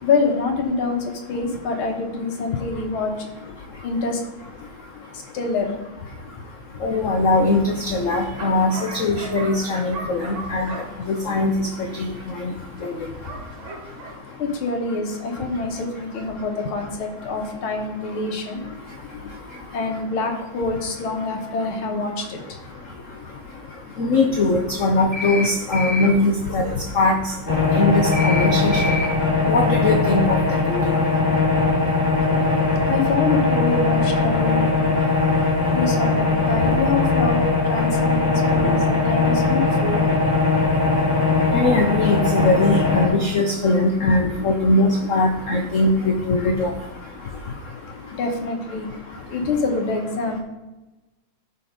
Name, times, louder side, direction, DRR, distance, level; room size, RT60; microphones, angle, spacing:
voice 1, 0.0-3.3 3.8-4.2 5.1-5.8 14.4-18.6 19.7-22.6 32.9-35.0 35.7-40.0 48.1-48.9 49.3-50.4, left 3 dB, 80° left, 3 dB, 2.0 m, -26 dB
voice 2, 6.8-10.7 11.1-11.7 12.0-12.1 24.0-26.6 26.9-27.2 27.7-28.9 29.5-30.4 30.7-30.9 41.5-46.7, left 2 dB, 65° left, 4 dB, 0.8 m, -20 dB
Bark, 7.0-14.2, right 3 dB, 75° right, 2.3 m, -39 dB
sound 1, 25.1-25.5 25.7-26.1 28.1-28.5 28.7-29.1, left 3 dB, 40° right, 3.1 m, -27 dB
sound 2, 27.5-43.1, left 3 dB, 20° left, 2.0 m, -20 dB
12.0 x 4.2 x 5.1 m, 1.1 s
omnidirectional pair, 2.3 m